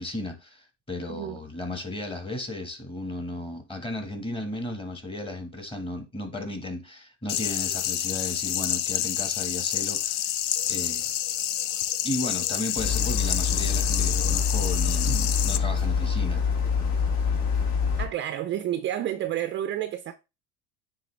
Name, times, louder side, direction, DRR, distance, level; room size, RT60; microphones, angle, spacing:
voice 1, 0.0-10.3 10.7-11.1 12.0-16.4, left 1 dB, 15° left, 1.5 m, -34 dB
sound 1, 7.3-15.6, left 12 dB, 80° left, 0.6 m, -28 dB
sound 2, 12.8-18.1, left 6 dB, 50° left, 1.9 m, -25 dB
voice 2, 18.0-20.1, right 11 dB, 35° right, 0.5 m, -30 dB
9.2 x 3.2 x 3.2 m
supercardioid pair, 110°, 36 cm